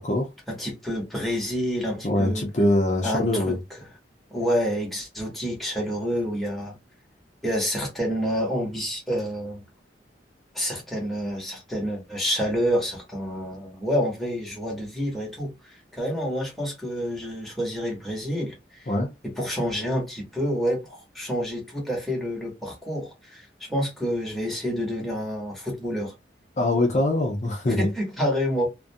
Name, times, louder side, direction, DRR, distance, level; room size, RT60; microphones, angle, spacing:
voice 1, 0.5-2.5 3.0-3.6 4.3-6.8 7.4-9.6 10.5-18.9 19.2-26.1 27.8-28.7, equal, ahead, 1.0 m, -28 dB
voice 2, 2.0-3.6 18.9-19.1 26.6-27.9, left 1 dB, 40° left, 0.6 m, -23 dB
2.5 x 2.2 x 2.6 m
head